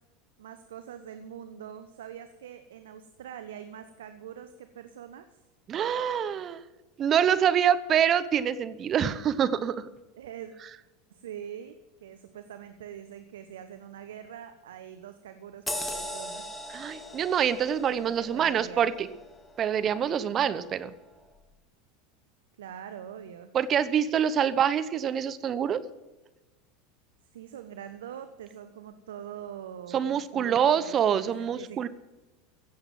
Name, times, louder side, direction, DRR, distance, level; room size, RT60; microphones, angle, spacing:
voice 1, 0.4-5.3 10.2-10.5 11.1-16.5 18.0-18.9 22.6-23.5 27.3-31.9, right 9 dB, 80° right, 9 dB, 0.8 m, -43 dB
voice 2, 5.7-6.6 7.0-9.8 16.7-19.1 19.6-20.9 23.5-25.8 29.9-31.9, right 8 dB, 40° right, 14 dB, 0.8 m, -25 dB
sound 1, 15.7-20.6 21.1-21.2, left 1 dB, 10° left, 1.8 m, -40 dB
16.0 x 7.9 x 7.5 m, 1.1 s
hypercardioid pair, 85°, 0 cm